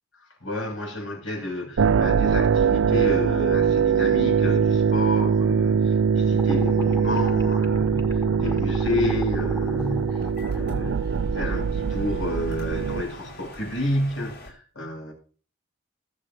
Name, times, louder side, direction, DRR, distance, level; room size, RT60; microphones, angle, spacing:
voice 1, 0.2-15.1, left 1 dB, 80° left, 7.3 m, -30 dB
sound 1, 1.8-13.0, right 6 dB, 80° right, 0.5 m, -22 dB
sound 2, 6.4-12.6, equal, 15° left, 1.6 m, -37 dB
sound 3, 8.9-14.5, left 1 dB, 55° left, 5.1 m, -46 dB
22.0 x 7.6 x 2.9 m
head